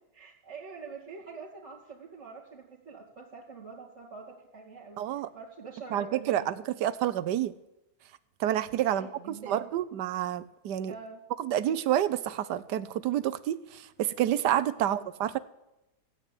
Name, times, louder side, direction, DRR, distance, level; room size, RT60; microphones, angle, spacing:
voice 1, 0.1-6.5 8.8-9.6 10.9-11.2 14.8-15.0, right 5 dB, 45° right, -7 dB, 2.6 m, -45 dB
voice 2, 5.0-5.3 5.9-6.5 6.8-7.5 8.4-9.1 9.5-10.9 11.4-15.4, right 11 dB, 85° right, 15 dB, 1.3 m, -28 dB
15.5 x 9.5 x 9.1 m, 0.93 s
omnidirectional pair, 1.7 m